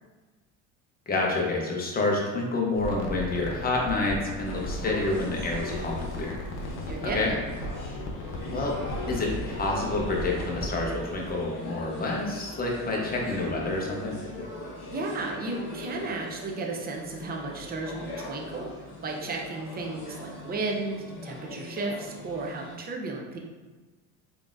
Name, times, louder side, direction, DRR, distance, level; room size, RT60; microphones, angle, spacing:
voice 1, 1.1-6.4 7.0-7.3 8.5-8.8 9.1-14.2, left 2 dB, 20° left, -1 dB, 0.8 m, -28 dB
sound 1, 2.7-11.3, left 1 dB, 90° left, 0.8 m, -37 dB
sound 2, 4.4-22.8, left 1 dB, 65° left, 1.4 m, -40 dB
voice 2, 6.9-7.4 14.9-23.4, right 3 dB, 25° right, 1 dB, 0.5 m, -34 dB
3.9 x 3.5 x 2.5 m, 1.2 s
cardioid pair, 120°, 41 cm